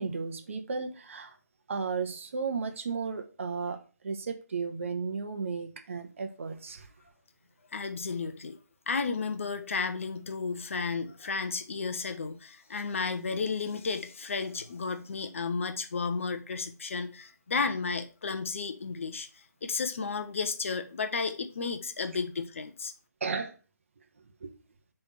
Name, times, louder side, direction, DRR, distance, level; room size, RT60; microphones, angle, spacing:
voice 1, 0.0-1.4 1.7-6.9 23.2-23.5 24.4-24.5, right 5 dB, 45° right, 0.9 m, -34 dB
voice 2, 7.7-8.6 8.9-22.9, left 4 dB, 45° left, 0.8 m, -33 dB
6.8 x 3.5 x 5.6 m
figure-of-eight pair, 145°, 10 cm